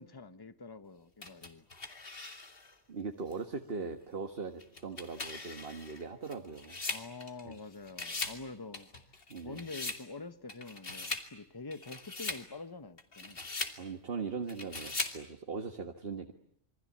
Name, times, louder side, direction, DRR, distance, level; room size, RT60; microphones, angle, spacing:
voice 1, 0.0-1.6 6.9-8.9 9.4-13.4, left 3 dB, 20° left, 1.1 m, -46 dB
sound 1, 1.2-2.7 3.3-3.4 4.6-7.6 7.9-8.4 8.7-10.0 10.5-11.3 11.7-12.4 13.0-13.8 14.5-15.2, left 3 dB, 50° left, 2.6 m, -40 dB
voice 2, 2.9-6.8 7.4-7.6 9.3-9.6 13.8-16.3, right 4 dB, 55° right, 1.8 m, -40 dB
27.5 x 24.0 x 8.7 m
omnidirectional pair, 1.2 m